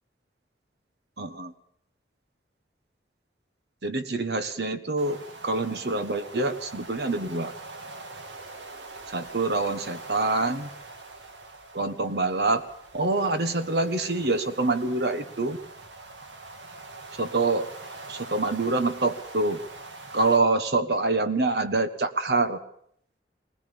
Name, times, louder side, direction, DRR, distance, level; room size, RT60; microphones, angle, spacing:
voice 1, 1.2-1.5 3.8-5.2 5.4-7.5 9.1-10.7 11.7-12.6 12.9-15.6 17.2-17.7 18.1-19.6 20.1-22.6, right 3 dB, 65° right, 10 dB, 1.4 m, -26 dB
sound 1, 5.0-20.4, right 3 dB, 90° right, 1.9 m, -43 dB
19.5 x 19.0 x 7.1 m, 0.68 s
head